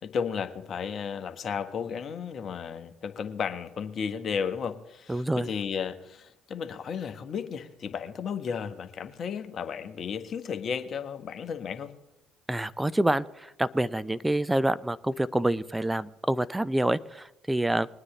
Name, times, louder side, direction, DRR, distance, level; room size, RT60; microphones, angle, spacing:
voice 1, 0.0-11.9, left 6 dB, 50° left, 10 dB, 1.1 m, -34 dB
voice 2, 5.1-5.5 12.5-17.9, right 1 dB, 10° right, 15 dB, 0.5 m, -27 dB
21.0 x 9.6 x 3.3 m, 0.93 s
hypercardioid pair, 55°, 0 cm